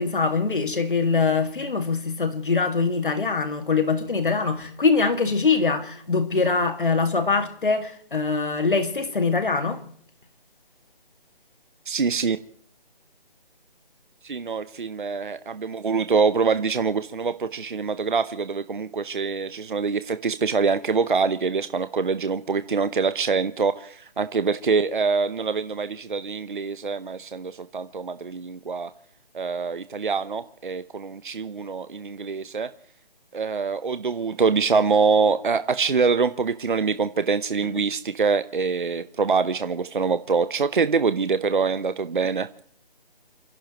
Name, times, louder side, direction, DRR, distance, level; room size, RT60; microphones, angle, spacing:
voice 1, 0.0-9.8, left 4 dB, 60° left, 2.1 m, -23 dB
voice 2, 11.9-12.4 14.2-28.9 29.3-32.7 33.3-42.5, right 5 dB, 60° right, 0.8 m, -24 dB
29.5 x 15.5 x 3.0 m
hypercardioid pair, 180°, 29 cm